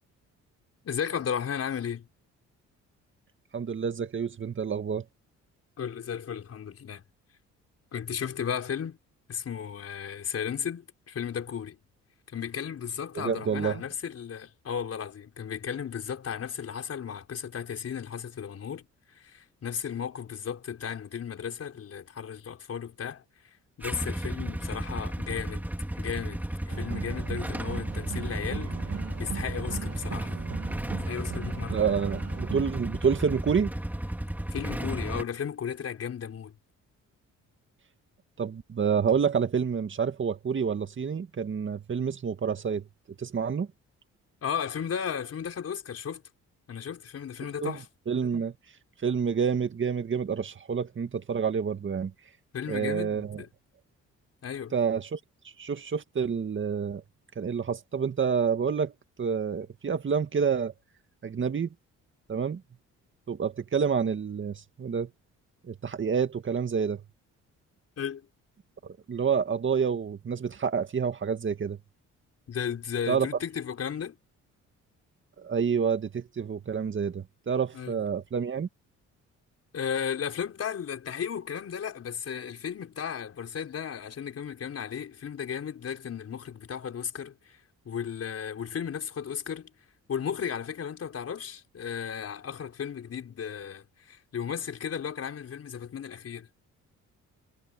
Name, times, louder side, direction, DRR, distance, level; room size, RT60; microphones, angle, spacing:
voice 1, 0.8-2.1 5.8-7.0 7.9-9.0 9.3-11.8 12.3-18.8 19.1-28.7 29.2-30.3 31.0-32.0 34.5-36.5 44.4-46.2 46.7-47.9 52.5-53.5 54.4-54.7 68.0-68.3 72.5-74.2 77.7-77.9 79.7-87.6 87.8-89.7 90.1-96.5, left 7 dB, 55° left, 4.8 m, -35 dB
voice 2, 3.5-5.0 13.2-13.8 31.7-33.7 38.4-42.8 43.2-43.7 47.6-47.8 48.1-48.5 49.0-52.1 52.7-53.4 54.7-55.2 55.6-57.0 57.4-58.9 59.2-60.7 61.2-61.7 62.3-62.6 63.3-65.1 65.7-67.0 68.8-71.8 73.1-73.3 75.4-78.7, right 6 dB, 40° right, 2.1 m, -28 dB
Motorcycle / Engine starting / Idling, 23.8-35.2, right 1 dB, 5° right, 2.7 m, -33 dB
sound 1, 26.7-32.7, right 8 dB, 55° right, 3.2 m, -39 dB
cardioid pair, 90°, 30 cm